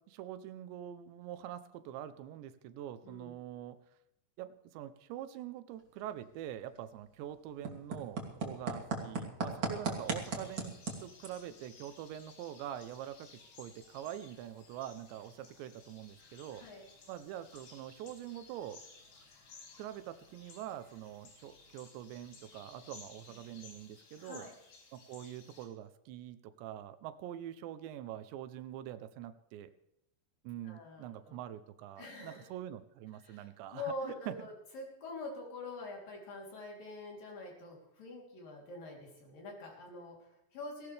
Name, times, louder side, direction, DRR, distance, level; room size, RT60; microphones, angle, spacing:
voice 1, 0.0-3.8 4.4-13.3 13.6-16.7 17.1-18.8 19.8-24.5 24.9-29.7 30.4-34.5, right 11 dB, 85° right, 12 dB, 3.1 m, -45 dB
voice 2, 3.0-3.4 16.6-16.8 24.2-24.5 30.6-31.4 32.0-32.5 33.2-40.9, left 2 dB, 55° left, -1 dB, 4.9 m, -45 dB
sound 1, 5.7-23.8, right 4 dB, 35° right, 2.8 m, -45 dB
sound 2, 10.0-25.7, left 4 dB, 85° left, 5.6 m, -58 dB
18.0 x 17.5 x 3.4 m, 0.80 s
omnidirectional pair, 5.1 m